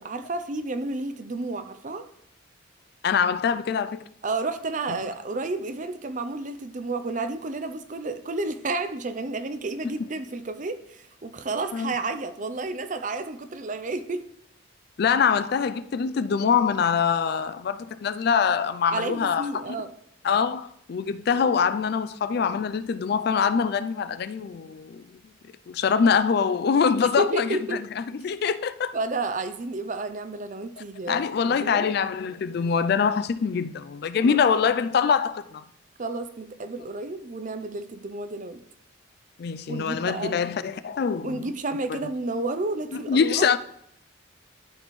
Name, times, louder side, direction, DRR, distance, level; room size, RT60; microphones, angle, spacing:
voice 1, 0.0-2.0 4.2-14.3 18.9-19.9 27.2-27.8 28.9-31.9 34.2-34.4 36.0-38.6 39.7-40.3 41.2-43.5, right 2 dB, 40° right, 0.5 m, -31 dB
voice 2, 3.0-4.0 9.8-9.9 11.7-11.9 15.0-19.6 20.2-25.0 25.7-28.9 30.8-35.6 39.4-41.5 41.9-42.0 43.1-43.6, left 6 dB, 50° left, 0.3 m, -24 dB
12.5 x 4.2 x 3.1 m
head